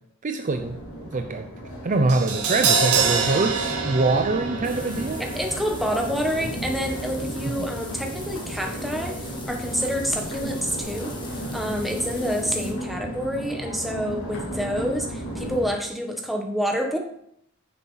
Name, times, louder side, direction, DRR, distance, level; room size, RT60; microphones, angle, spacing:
voice 1, 0.2-1.5 1.8-5.2, right 3 dB, 35° right, 6 dB, 0.6 m, -24 dB
Crowd, 0.5-15.7, right 1 dB, 80° left, 2.5 m, -34 dB
Crash cymbal, 2.1-8.3 8.5-8.7, right 5 dB, 90° right, 2.3 m, -27 dB
sound 1, 4.6-12.7, left 3 dB, 20° left, 1.8 m, -42 dB
voice 2, 5.2-17.0, equal, ahead, 1 dB, 1.4 m, -28 dB
10.0 x 7.0 x 4.0 m, 0.71 s
head